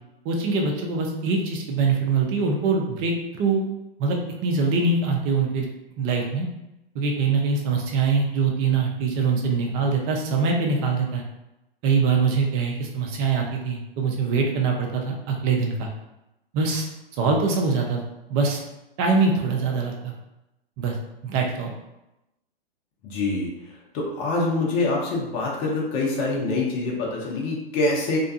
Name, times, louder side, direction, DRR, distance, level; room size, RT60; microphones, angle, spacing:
voice 1, 0.2-3.6 4.0-5.7 6.0-6.5 6.9-11.2 11.8-15.9 16.5-16.9 17.1-18.0 18.3-18.6 19.0-20.1 20.8-21.0 21.2-21.7, right 4 dB, 25° right, 1 dB, 0.4 m, -23 dB
voice 2, 23.0-23.5 23.9-28.2, left 2 dB, 30° left, -3 dB, 0.6 m, -25 dB
2.4 x 2.2 x 2.5 m, 0.92 s
hypercardioid pair, 125°, 31 cm